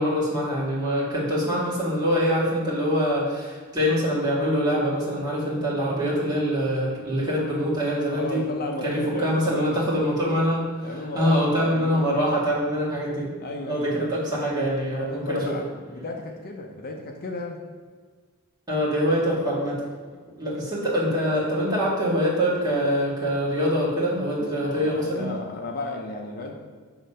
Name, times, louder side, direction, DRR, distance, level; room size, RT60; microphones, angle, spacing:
voice 1, 0.0-8.4 8.8-13.3 13.7-15.6 18.7-19.8 20.4-25.3, equal, 20° right, -7 dB, 1.8 m, -24 dB
voice 2, 8.1-9.9 10.8-12.2 13.4-14.1 14.6-17.6 20.1-20.2 24.4-26.5, left 2 dB, 45° left, 2 dB, 0.6 m, -34 dB
6.8 x 3.2 x 5.5 m, 1.5 s
head